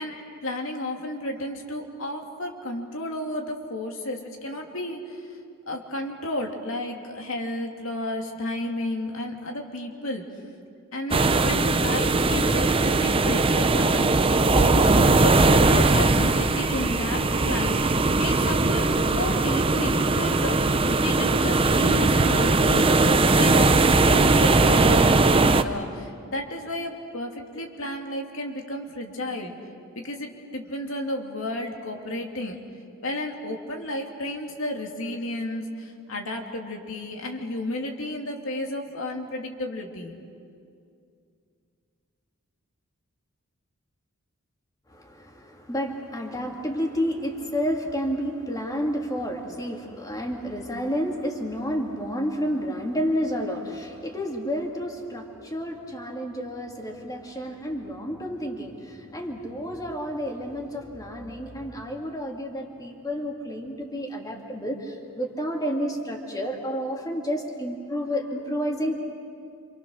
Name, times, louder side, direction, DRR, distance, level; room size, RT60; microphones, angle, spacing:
voice 1, 0.0-5.4 5.7-10.2 10.9-20.6 21.0-22.9 23.4-29.5 30.0-32.6 33.0-40.2, left 1 dB, 65° left, 1 dB, 2.8 m, -32 dB
sound 1, 11.1-25.6, right 3 dB, 25° right, 0.8 m, -20 dB
voice 2, 44.9-69.0, equal, 15° left, 1 dB, 2.7 m, -30 dB
27.5 x 27.5 x 6.5 m, 2.4 s
head